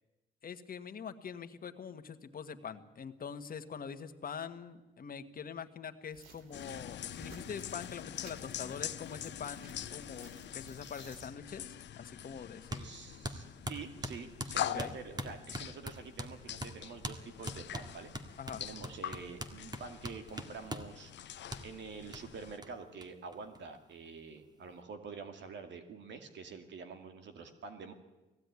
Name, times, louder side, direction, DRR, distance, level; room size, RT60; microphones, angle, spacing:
voice 1, 0.4-12.9 14.5-14.9 18.4-18.6, left 7 dB, 45° left, 8 dB, 1.5 m, -44 dB
sound 1, 6.1-11.3, right 5 dB, 90° right, 2.5 m, -58 dB
sound 2, 6.5-22.6, left 11 dB, 65° left, 0.9 m, -44 dB
sound 3, 12.7-12.9 13.2-16.3 16.6-16.8 17.0-17.2 17.5-20.9 21.5-21.6 22.1-22.2 22.6-22.7 23.0-23.1 23.3-24.1, right 1 dB, 20° right, 1.9 m, -41 dB
voice 2, 12.8-18.1 18.6-27.9, right 5 dB, 65° right, 7 dB, 2.2 m, -47 dB
18.5 x 16.0 x 9.6 m, 1.1 s
cardioid pair, 90°, 20 cm